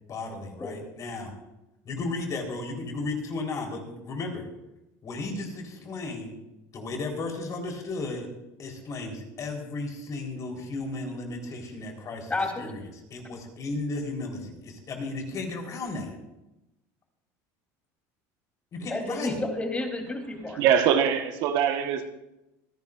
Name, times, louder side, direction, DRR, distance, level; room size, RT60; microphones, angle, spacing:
voice 1, 0.1-1.3 1.8-4.5 5.0-6.3 6.7-8.3 8.6-12.8 13.1-16.2 18.7-19.4, left 3 dB, 40° left, 2 dB, 3.9 m, -34 dB
voice 2, 12.3-12.7 18.9-20.6, left 2 dB, 15° left, 3 dB, 3.2 m, -31 dB
voice 3, 20.6-22.1, right 8 dB, 70° right, 6 dB, 1.3 m, -23 dB
26.5 x 11.0 x 2.5 m, 0.94 s
supercardioid pair, 105°, 8 cm